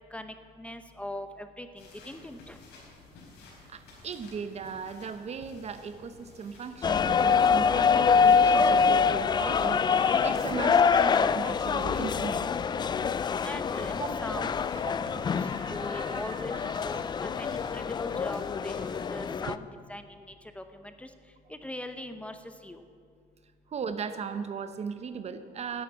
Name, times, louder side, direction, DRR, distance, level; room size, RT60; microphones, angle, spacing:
voice 1, 0.1-2.6 13.4-14.6 15.7-18.7 19.1-21.1 21.5-22.4 22.6-22.8, left 1 dB, 5° left, 8 dB, 0.7 m, -41 dB
sound 1, 1.8-19.4, left 2 dB, 90° left, 4.3 m, -53 dB
voice 2, 3.7-12.5 14.0-14.5 14.7-17.0 23.7-25.8, right 6 dB, 40° right, 10 dB, 0.8 m, -38 dB
sound 2, 6.8-19.5, left 6 dB, 25° left, 0.3 m, -25 dB
sound 3, 13.5-19.3, right 1 dB, 80° right, 2.8 m, -50 dB
11.5 x 8.3 x 8.9 m, 2.2 s
cardioid pair, 110°, 17 cm